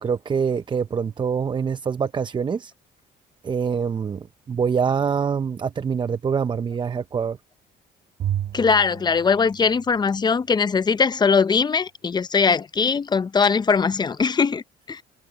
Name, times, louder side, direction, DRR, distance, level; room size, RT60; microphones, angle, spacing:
voice 1, 0.0-2.7 3.4-7.4, right 6 dB, 25° right, 0.6 m, -25 dB
Bowed string instrument, 8.2-10.6, right 11 dB, 50° right, 1.0 m, -32 dB
voice 2, 8.5-15.0, left 5 dB, 25° left, 0.6 m, -21 dB
cardioid pair, 110°, 17 cm